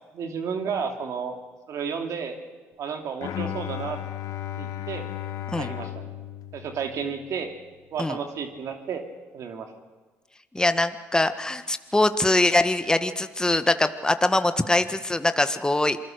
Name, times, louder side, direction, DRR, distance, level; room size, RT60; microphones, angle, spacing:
voice 1, 0.1-1.4 1.7-2.4 2.8-4.0 4.6-5.1 5.6-6.1 6.5-7.5 7.9-9.0 9.3-9.7, right 6 dB, 65° right, 4 dB, 2.8 m, -32 dB
Bowed string instrument, 3.2-7.4, left 11 dB, 70° left, 1.4 m, -35 dB
voice 2, 10.5-16.0, left 2 dB, 10° left, 10 dB, 1.5 m, -23 dB
27.0 x 20.5 x 6.7 m, 1.3 s
supercardioid pair, 65°, 6 cm